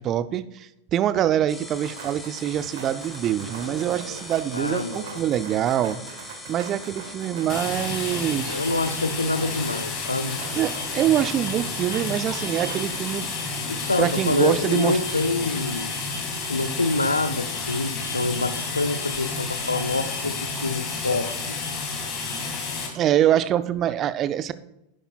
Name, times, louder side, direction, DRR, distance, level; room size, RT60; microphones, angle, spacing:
voice 1, 0.0-6.0 6.5-8.6 10.5-13.3 14.0-15.0 22.9-24.5, right 11 dB, 30° right, 14 dB, 0.5 m, -24 dB
sound 1, 1.5-7.6, left 2 dB, 5° left, 1.5 m, -41 dB
sound 2, 1.8-13.2, right 6 dB, 55° right, 1.2 m, -42 dB
voice 2, 4.5-5.2 8.4-10.4 13.7-15.9 16.5-21.5, left 3 dB, 80° left, 10 dB, 0.6 m, -26 dB
sound 3, 7.5-22.9, left 4 dB, 35° left, 2.2 m, -30 dB
11.0 x 10.0 x 2.3 m, 0.84 s
figure-of-eight pair, 90°, 0 cm